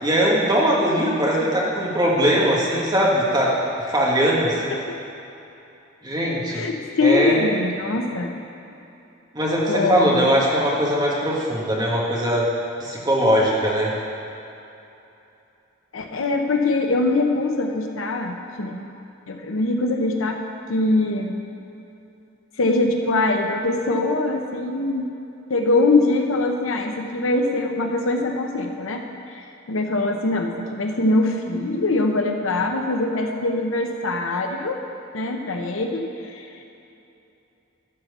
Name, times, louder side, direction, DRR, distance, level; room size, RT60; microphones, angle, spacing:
voice 1, 0.0-3.6 3.9-4.7 6.0-6.6 7.0-7.4 9.3-12.5 12.8-13.9, equal, 20° right, -4 dB, 1.6 m, -20 dB
voice 2, 6.5-8.3 9.7-10.3 15.9-18.8 19.3-20.4 20.7-21.3 22.6-25.1 25.5-29.0 29.3-34.8 35.1-36.5, left 2 dB, 70° left, 3 dB, 0.8 m, -23 dB
12.5 x 4.4 x 6.7 m, 2.8 s
head